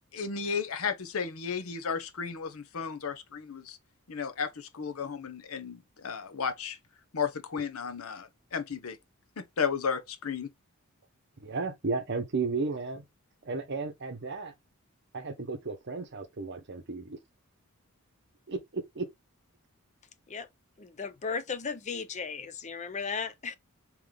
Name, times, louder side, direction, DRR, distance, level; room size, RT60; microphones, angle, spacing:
voice 1, 0.1-3.8 4.1-6.8 7.1-9.0 9.4-10.5, left 6 dB, 65° left, 0.7 m, -34 dB
voice 2, 11.4-13.0 13.4-14.5 15.1-17.2 18.5-19.1, right 4 dB, 50° right, 0.8 m, -34 dB
voice 3, 20.8-23.6, left 5 dB, 30° left, 0.5 m, -35 dB
3.7 x 3.0 x 3.3 m
head